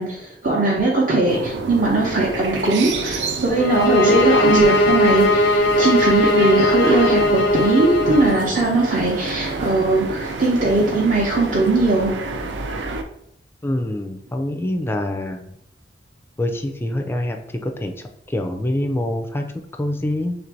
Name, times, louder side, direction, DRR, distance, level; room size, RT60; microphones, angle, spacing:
voice 1, 0.0-12.1, right 2 dB, 50° right, -4 dB, 0.7 m, -19 dB
sound 1, 1.3-13.0, right 3 dB, 80° right, 0.4 m, -29 dB
sound 2, 3.5-8.4, left 1 dB, 85° left, 0.5 m, -18 dB
voice 2, 13.6-15.5 16.4-19.4 19.8-20.3, left 1 dB, 15° left, 4 dB, 0.4 m, -25 dB
3.4 x 2.6 x 4.5 m, 0.75 s
head